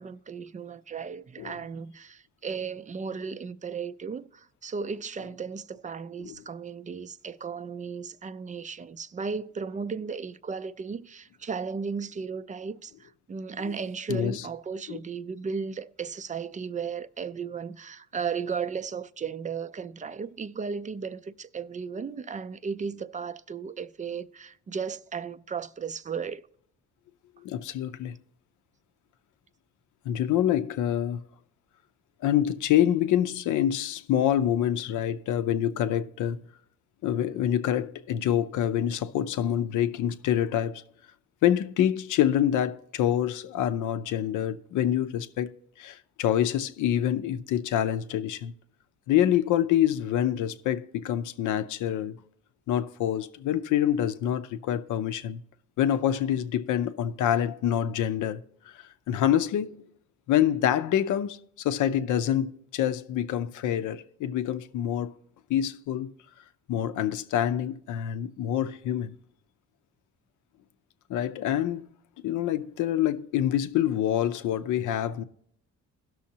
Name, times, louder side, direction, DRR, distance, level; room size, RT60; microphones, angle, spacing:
voice 1, 0.0-26.5, right 5 dB, 25° right, 0.4 m, -35 dB
voice 2, 14.1-14.5 14.9-15.0 27.4-28.2 30.1-31.2 32.2-36.4 37.0-40.8 41.4-45.5 45.8-48.5 49.1-52.2 52.7-55.4 55.8-59.8 60.3-65.1 65.5-66.1 66.7-69.2 71.1-71.9 72.2-75.2, left 10 dB, 80° left, 0.6 m, -26 dB
17.0 x 6.3 x 2.8 m
cardioid pair, 90°, 30 cm